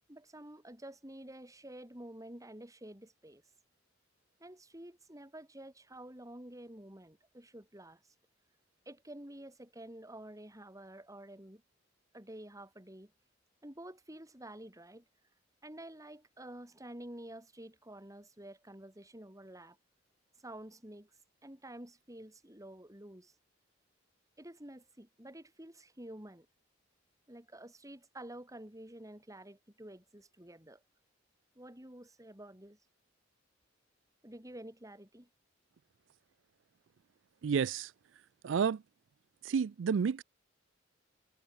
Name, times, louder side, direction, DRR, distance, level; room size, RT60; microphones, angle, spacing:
voice 1, 0.1-3.4 4.4-8.0 8.9-11.6 12.1-13.1 13.6-15.1 15.6-19.8 20.4-21.1 21.4-23.3 24.4-26.5 27.3-30.8 31.6-32.8 34.2-35.3, right 1 dB, 15° right, 4.3 m, -50 dB
voice 2, 37.4-37.9 38.4-38.8 39.4-40.2, right 6 dB, 70° right, 0.4 m, -30 dB
head